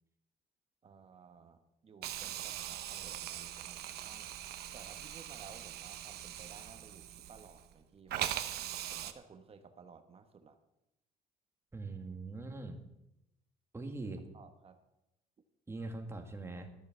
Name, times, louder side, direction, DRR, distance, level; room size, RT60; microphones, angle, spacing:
voice 1, 0.8-4.3 4.7-8.4 8.9-10.6 13.8-13.9 14.3-14.8, right 5 dB, 35° right, 8 dB, 1.0 m, -56 dB
Hiss, 2.0-7.7 8.1-9.1, right 12 dB, 70° right, 0.9 m, -41 dB
voice 2, 11.7-12.8 13.7-14.2 15.7-16.7, right 3 dB, 15° right, 4 dB, 1.8 m, -42 dB
13.0 x 6.8 x 6.7 m, 0.88 s
cardioid pair, 110°, 17 cm